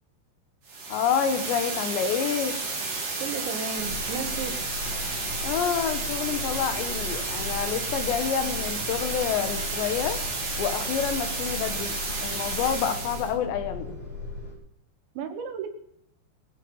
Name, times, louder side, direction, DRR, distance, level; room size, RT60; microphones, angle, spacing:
sound 1, 0.7-13.3, right 3 dB, 35° right, 3.5 m, -32 dB
voice 1, 0.9-2.5 5.4-10.2 10.6-14.0, left 8 dB, 80° left, 9 dB, 3.6 m, -28 dB
voice 2, 3.2-4.7 15.2-15.7, right 5 dB, 85° right, 6 dB, 4.0 m, -34 dB
sound 2, 3.8-14.5, left 3 dB, 40° left, 3.5 m, -37 dB
22.5 x 8.4 x 5.6 m, 0.74 s
omnidirectional pair, 5.0 m